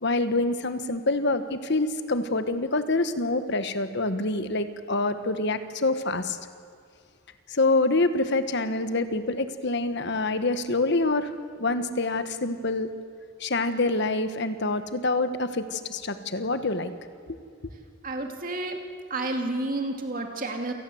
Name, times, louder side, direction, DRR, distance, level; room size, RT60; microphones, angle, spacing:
voice 1, 0.0-6.4 7.5-11.3 11.6-12.9 13.4-16.9, left 2 dB, 55° left, 10 dB, 1.3 m, -26 dB
voice 2, 18.0-18.8 19.1-20.7, right 2 dB, 40° right, 3 dB, 2.5 m, -30 dB
28.0 x 19.0 x 7.9 m, 2.3 s
head